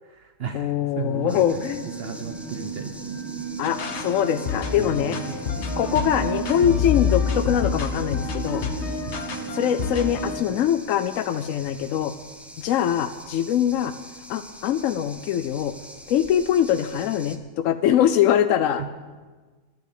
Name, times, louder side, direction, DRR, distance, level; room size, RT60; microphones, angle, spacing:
voice 1, 0.0-3.2 4.7-5.6 9.0-9.3 18.8-18.9, right 6 dB, 55° right, 7 dB, 0.9 m, -35 dB
voice 2, 0.5-1.8 3.6-5.2 5.8-8.6 9.5-12.1 12.6-13.9 14.3-15.7 16.1-18.8, left 10 dB, 85° left, 11 dB, 1.0 m, -23 dB
sound 1, 1.0-10.6, right 5 dB, 20° right, 2.2 m, -35 dB
sound 2, 1.3-17.4, equal, ahead, 0.6 m, -45 dB
sound 3, 3.6-10.4, left 6 dB, 60° left, 1.3 m, -28 dB
11.5 x 10.5 x 7.4 m, 1.4 s
omnidirectional pair, 1.3 m